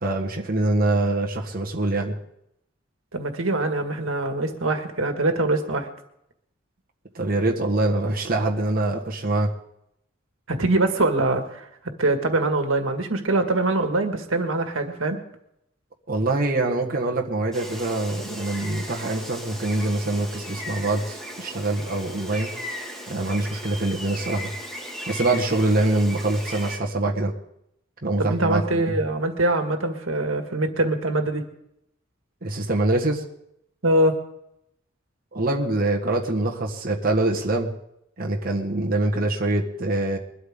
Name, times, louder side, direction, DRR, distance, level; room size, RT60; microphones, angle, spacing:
voice 1, 0.0-2.2 7.1-9.5 16.1-22.5 23.1-24.5 25.1-27.3 28.0-29.0 32.4-33.2 35.3-37.7 38.2-40.2, right 2 dB, 45° right, 0 dB, 1.5 m, -24 dB
voice 2, 3.1-5.9 10.5-11.7 12.0-15.2 28.3-31.4 33.8-34.2, right 2 dB, 85° right, 5 dB, 1.8 m, -23 dB
Gull seagull, 17.5-26.8, equal, 5° left, 2.8 m, -37 dB
22.0 x 12.5 x 3.7 m, 0.78 s
head